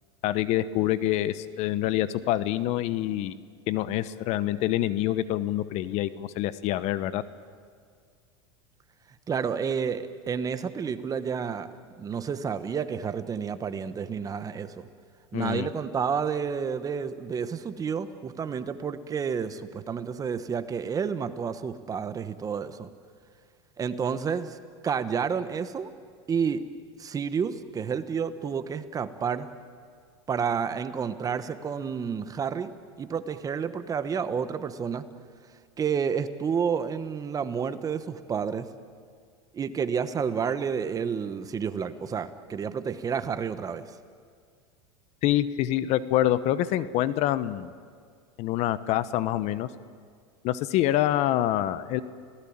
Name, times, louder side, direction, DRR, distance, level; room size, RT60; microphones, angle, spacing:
voice 1, 0.2-3.3 3.7-7.2 15.3-15.7 45.2-47.7 48.4-49.7 50.4-52.0, left 13 dB, 50° left, 15 dB, 1.0 m, -26 dB
voice 2, 9.3-11.7 12.0-14.9 15.3-22.9 23.8-24.6 24.8-25.9 26.3-26.6 27.0-29.5 30.3-32.7 33.0-35.0 35.8-38.7 39.5-43.9, right 6 dB, 25° right, 11 dB, 1.3 m, -30 dB
29.0 x 18.0 x 8.8 m, 2.1 s
supercardioid pair, 120°, 14 cm